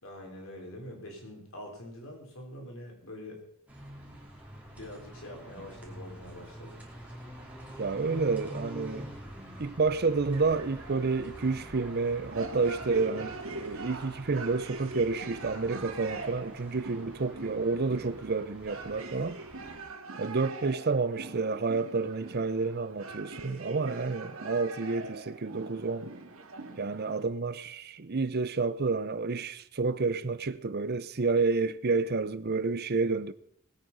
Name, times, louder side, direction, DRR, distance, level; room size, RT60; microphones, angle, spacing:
voice 1, 0.0-3.4 4.1-4.2 4.8-6.8, left 1 dB, 70° left, 4.1 m, -45 dB
sound 1, 3.7-19.8, right 1 dB, 5° right, 2.8 m, -46 dB
voice 2, 7.8-9.1 9.6-19.4 20.2-26.1 26.8-33.3, right 4 dB, 50° right, 0.7 m, -30 dB
sound 2, 10.3-27.2, right 3 dB, 80° right, 1.9 m, -43 dB
19.5 x 8.7 x 5.5 m
head